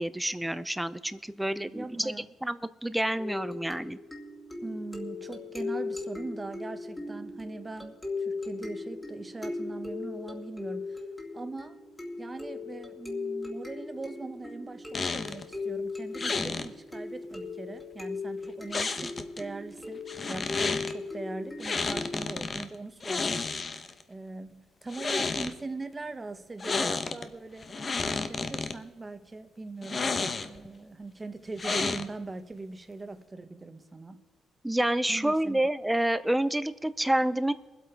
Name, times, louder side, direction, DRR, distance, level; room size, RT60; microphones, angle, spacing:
voice 1, 0.0-2.1 2.4-4.0 34.6-37.5, right 1 dB, 5° right, 14 dB, 0.6 m, -28 dB
voice 2, 1.5-2.3 4.6-11.0 11.3-11.8 12.2-20.0 20.3-34.2 35.1-35.6, right 3 dB, 20° right, 9 dB, 1.2 m, -41 dB
sound 1, 3.2-22.4, left 3 dB, 15° left, 2.3 m, -38 dB
sound 2, 14.9-15.4 16.2-16.7 18.7-19.4 20.1-20.9 21.6-22.7 23.0-24.0 24.8-25.5 26.6-27.2 27.6-28.7 29.8-30.7 31.6-32.3, left 4 dB, 35° left, 0.9 m, -31 dB
23.0 x 8.2 x 4.7 m, 1.2 s
cardioid pair, 90°, 0 cm